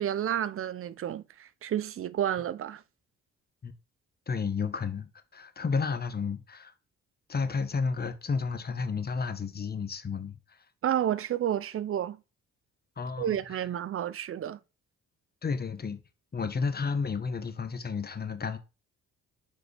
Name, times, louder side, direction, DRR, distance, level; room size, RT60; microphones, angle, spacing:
voice 1, 0.0-2.8 10.8-12.2 13.2-14.6, right 10 dB, 45° right, 0.5 m, -30 dB
voice 2, 4.3-6.7 7.3-10.6 13.0-13.7 15.4-16.0 16.3-18.6, left 5 dB, 30° left, 1.2 m, -32 dB
8.0 x 5.1 x 3.4 m
cardioid pair, 90°, 30 cm